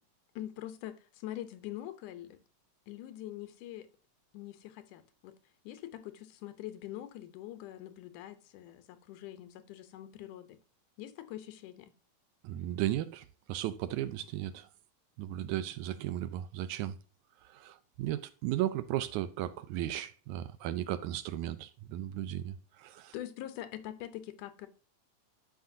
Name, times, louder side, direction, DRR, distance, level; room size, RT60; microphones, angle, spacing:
voice 1, 0.4-2.4 2.9-3.9 4.3-5.4 5.7-10.6 11.0-11.9 23.1-24.7, left 13 dB, 80° left, 2.3 m, -44 dB
voice 2, 12.4-14.7 15.2-17.0 17.4-23.1, right 13 dB, 80° right, 1.8 m, -35 dB
11.5 x 5.2 x 2.7 m
omnidirectional pair, 3.7 m